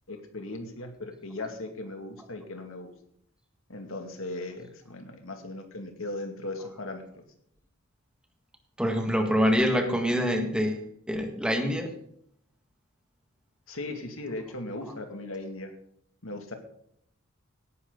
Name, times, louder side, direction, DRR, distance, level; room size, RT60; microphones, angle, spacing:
voice 1, 0.1-2.9 3.7-7.2 13.7-15.7 16.2-16.5, left 2 dB, 80° left, 5 dB, 2.4 m, -38 dB
voice 2, 8.8-11.9, equal, 5° right, 4 dB, 1.7 m, -25 dB
17.5 x 11.0 x 4.0 m, 0.69 s
head